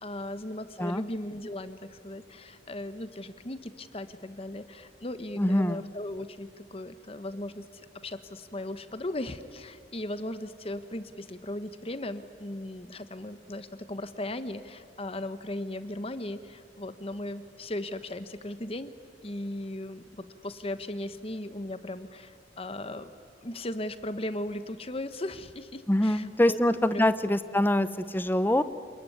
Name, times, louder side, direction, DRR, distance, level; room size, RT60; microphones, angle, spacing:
voice 1, 0.0-7.7 8.0-18.9 19.2-23.1 23.4-26.6 26.9-27.1, left 1 dB, 30° left, 11 dB, 1.1 m, -37 dB
voice 2, 5.4-5.9 25.9-28.6, left 1 dB, 10° left, 13 dB, 0.7 m, -24 dB
28.0 x 21.5 x 9.5 m, 2.3 s
head